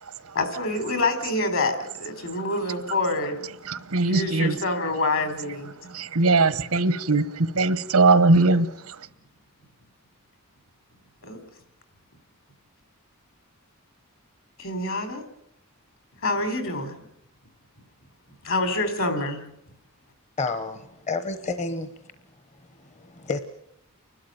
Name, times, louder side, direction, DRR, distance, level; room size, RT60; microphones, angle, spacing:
voice 1, 0.3-3.4 4.0-5.7 11.2-11.4 14.6-15.2 16.2-17.0 18.4-19.4, left 2 dB, 65° left, 3.8 m, -26 dB
voice 2, 3.7-4.6 5.9-9.0, right 3 dB, 90° right, 1.2 m, -20 dB
voice 3, 20.4-21.9 22.8-23.4, left 3 dB, 30° left, 1.0 m, -30 dB
29.0 x 12.5 x 9.3 m
head